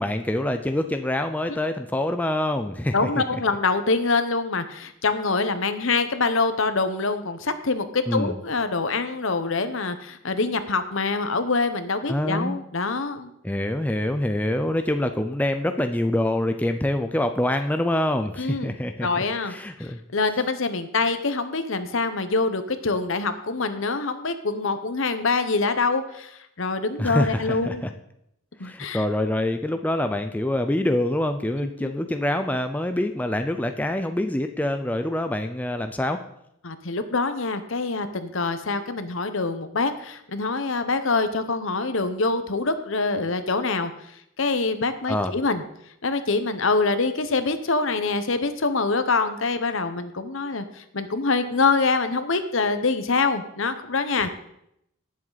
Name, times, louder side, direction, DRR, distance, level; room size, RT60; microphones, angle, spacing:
voice 1, 0.0-3.4 8.1-8.4 12.1-12.6 13.4-20.0 27.0-27.9 28.6-36.2 45.1-45.3 54.2-54.3, left 1 dB, 5° left, 6 dB, 0.5 m, -25 dB
voice 2, 2.9-13.3 18.4-18.7 19.0-19.5 19.8-27.8 28.6-29.0 31.8-31.9 36.6-43.9 44.4-45.6 46.0-54.3, left 3 dB, 70° left, 10 dB, 1.0 m, -25 dB
18.0 x 7.6 x 4.1 m, 0.77 s
head